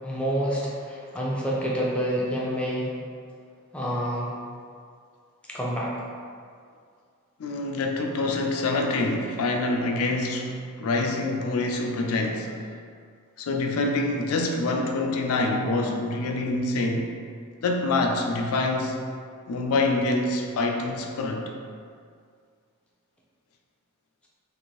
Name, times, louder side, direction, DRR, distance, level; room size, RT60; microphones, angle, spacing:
voice 1, 0.0-2.9 3.7-4.3 5.5-5.9, equal, 5° left, -5 dB, 0.4 m, -28 dB
voice 2, 7.4-12.6 13.4-17.1 17.6-19.1 19.5-21.5, left 2 dB, 90° left, 2 dB, 0.4 m, -26 dB
2.7 x 2.6 x 3.0 m, 2.2 s
head